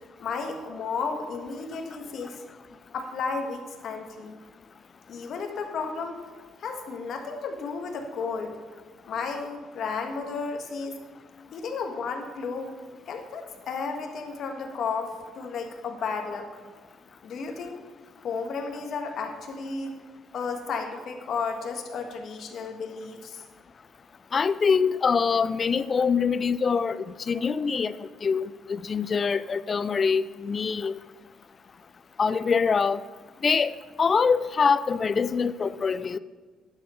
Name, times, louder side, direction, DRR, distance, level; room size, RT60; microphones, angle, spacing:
voice 1, 0.2-2.4 2.9-4.4 5.1-6.2 6.6-8.6 9.1-11.0 11.5-12.7 13.1-16.5 17.2-17.8 18.2-20.0 20.3-23.4, left 5 dB, 55° left, 4 dB, 1.5 m, -33 dB
voice 2, 24.3-27.9 28.2-31.0 32.2-33.0 33.4-36.2, left 5 dB, 35° left, 16 dB, 0.4 m, -24 dB
10.5 x 7.7 x 5.6 m, 1.4 s
cardioid pair, 125°, 0 cm